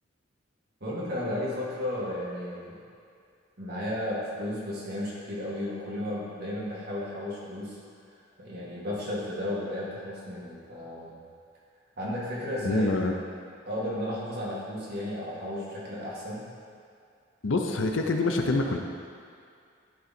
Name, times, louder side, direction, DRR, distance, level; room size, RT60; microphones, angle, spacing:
voice 1, 0.8-2.7 3.6-7.8 8.4-11.2 12.0-12.9 13.7-16.4, left 1 dB, 55° right, -7 dB, 2.0 m, -33 dB
voice 2, 12.6-13.1 17.4-18.8, left 2 dB, 75° left, 3 dB, 0.7 m, -26 dB
11.0 x 3.9 x 4.3 m, 2.3 s
head